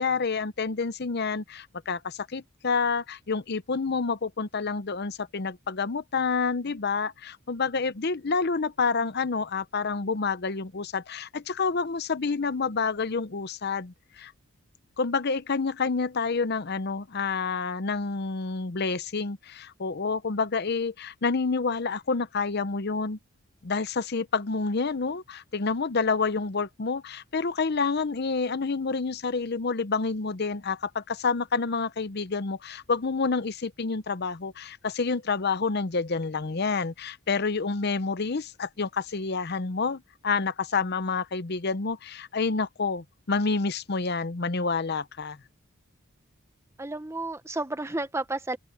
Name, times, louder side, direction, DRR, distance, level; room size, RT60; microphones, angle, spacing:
voice 1, 0.0-14.3 15.0-23.2 23.6-45.4, left 4 dB, 50° left, 0.7 m, -28 dB
voice 2, 46.8-48.6, right 2 dB, 15° right, 1.0 m, -31 dB
open air
head